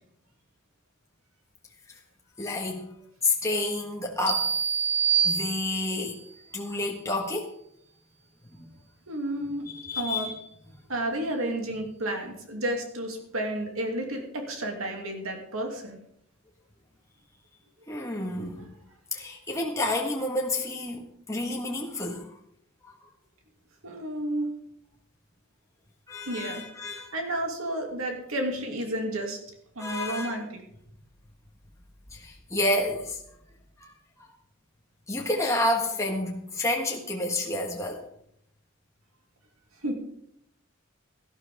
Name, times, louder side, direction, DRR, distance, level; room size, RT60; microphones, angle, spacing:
voice 1, 2.4-2.9 3.2-4.5 5.2-6.2 6.5-7.5 8.5-8.7 9.6-10.4 17.9-18.7 19.1-22.3 22.8-23.0 26.1-27.1 29.8-30.4 32.1-33.2 33.8-33.9 34.2-34.3 35.1-38.0, left 2 dB, 15° left, -1 dB, 1.5 m, -30 dB
sound 1, 4.3-6.1, right 7 dB, 30° left, 3.3 m, -26 dB
voice 2, 9.1-9.6 9.9-10.3 10.9-16.0 23.8-24.5 26.3-26.6 27.1-29.4 29.8-30.6 39.8-39.9, right 1 dB, 75° right, 2 dB, 2.5 m, -31 dB
17.5 x 12.0 x 3.6 m, 0.73 s
head